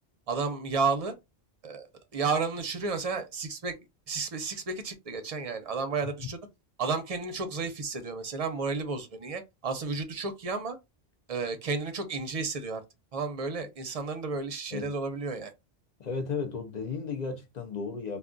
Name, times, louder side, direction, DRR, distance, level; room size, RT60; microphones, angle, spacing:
voice 1, 0.3-1.1 1.6-1.9 2.1-3.7 4.1-6.4 6.8-10.8 11.3-12.8 13.1-15.5, right 4 dB, 45° right, 0.6 m, -32 dB
voice 2, 16.0-18.2, left 5 dB, 50° left, 0.6 m, -34 dB
2.3 x 2.2 x 3.7 m
omnidirectional pair, 1.1 m